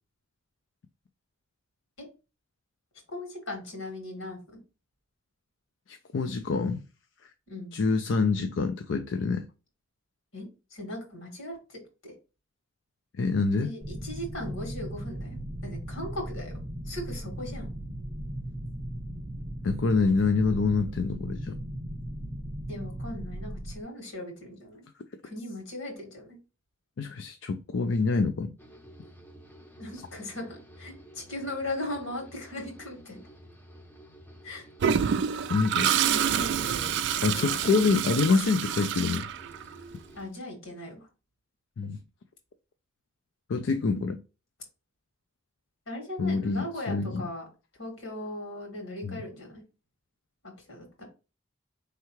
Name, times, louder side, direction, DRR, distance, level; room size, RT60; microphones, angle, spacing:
voice 1, 3.1-4.4 7.5-7.8 10.3-12.1 13.5-16.5 16.9-17.7 22.7-24.9 25.2-26.4 29.8-33.3 34.4-34.7 35.3-35.5 35.8-37.7 40.2-41.1 45.9-47.4 47.8-49.6 50.7-51.0, left 1 dB, 85° left, 2.1 m, -38 dB
voice 2, 5.9-6.8 7.7-9.5 13.2-13.7 19.6-21.6 27.0-28.5 35.5-35.9 37.2-39.3 41.8-42.0 43.5-44.2 46.2-47.2 49.0-49.2, left 4 dB, 65° left, 0.4 m, -26 dB
sound 1, 13.8-23.8, right 1 dB, 35° right, 0.9 m, -37 dB
sound 2, 28.6-40.2, equal, 10° left, 0.6 m, -52 dB
Toilet flush, 34.8-39.9, right 8 dB, 60° right, 0.3 m, -27 dB
4.5 x 3.4 x 3.1 m
head